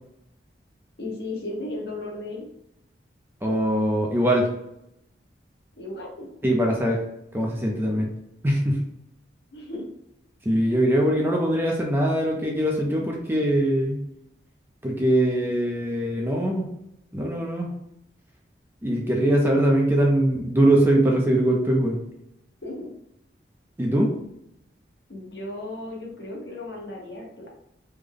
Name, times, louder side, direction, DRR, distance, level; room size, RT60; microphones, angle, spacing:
voice 1, 1.0-2.4 5.8-6.3 9.5-9.8 22.6-22.9 25.1-27.5, left 2 dB, 65° left, -2 dB, 1.0 m, -35 dB
voice 2, 3.4-4.5 6.4-7.0 7.3-8.1 8.4-8.8 10.4-14.0 14.8-16.7 17.1-17.7 18.8-22.0 23.8-24.1, right 1 dB, 10° right, 0 dB, 0.4 m, -22 dB
3.3 x 2.1 x 3.7 m, 0.79 s
head